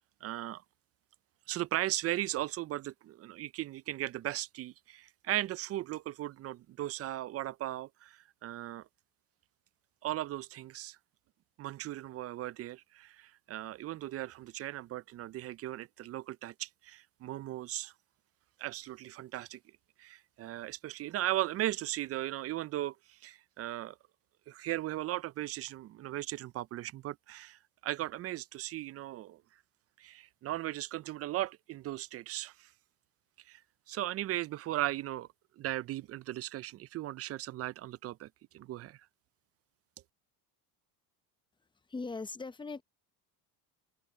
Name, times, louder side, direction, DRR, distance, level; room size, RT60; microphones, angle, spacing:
voice 1, 0.2-0.6 1.5-8.9 10.0-11.0 11.6-17.9 18.6-19.6 20.0-24.0 24.5-29.4 30.0-32.7 33.5-33.6 33.9-35.3 35.6-39.0, right 14 dB, 35° right, 0.4 m, -37 dB
voice 2, 41.9-42.8, left 3 dB, 10° left, 0.7 m, -39 dB
open air
supercardioid pair, 105°, 45 cm